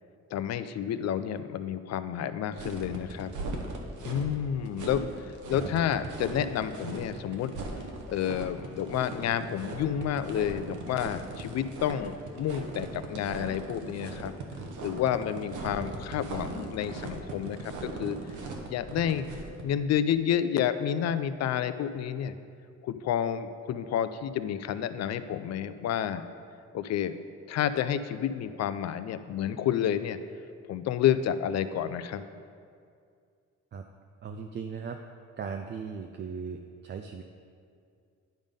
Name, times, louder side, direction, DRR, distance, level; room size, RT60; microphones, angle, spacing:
voice 1, 0.3-3.3 4.0-7.5 8.1-14.3 14.8-18.2 18.7-19.3 19.6-22.3 22.8-26.2 26.7-27.1 27.5-30.2 30.7-32.2, left 9 dB, 60° left, 12 dB, 0.4 m, -30 dB
sound 1, 2.5-19.6, right 3 dB, 80° right, 1.0 m, -39 dB
voice 2, 34.2-35.0 35.4-37.2, right 6 dB, 35° right, 5 dB, 0.4 m, -38 dB
10.5 x 3.6 x 5.2 m, 2.3 s
cardioid pair, 90°, 30 cm